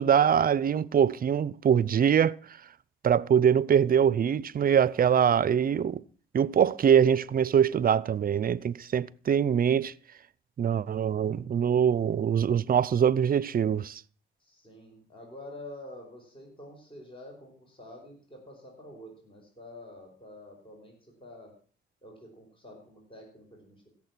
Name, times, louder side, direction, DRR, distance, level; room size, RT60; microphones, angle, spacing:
voice 1, 0.0-2.4 3.0-6.0 6.3-9.9 10.6-14.0, right 8 dB, 45° right, 0.6 m, -23 dB
voice 2, 14.4-21.5 22.0-23.9, left 1 dB, 25° left, 5.2 m, -48 dB
16.0 x 7.4 x 6.0 m
cardioid pair, 75°, 20 cm